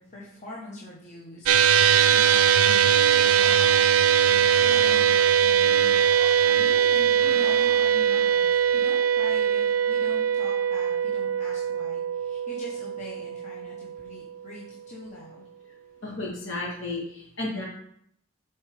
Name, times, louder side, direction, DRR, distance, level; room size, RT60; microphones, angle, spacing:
voice 1, 0.0-15.5, left 2 dB, 35° left, -5 dB, 1.1 m, -43 dB
sound 1, 1.5-14.0, right 8 dB, 90° right, 0.5 m, -21 dB
sound 2, 2.9-8.7, right 1 dB, 15° right, 1.3 m, -46 dB
voice 2, 16.0-17.6, left 2 dB, 60° left, -4 dB, 2.6 m, -33 dB
7.3 x 4.5 x 5.0 m, 0.71 s
head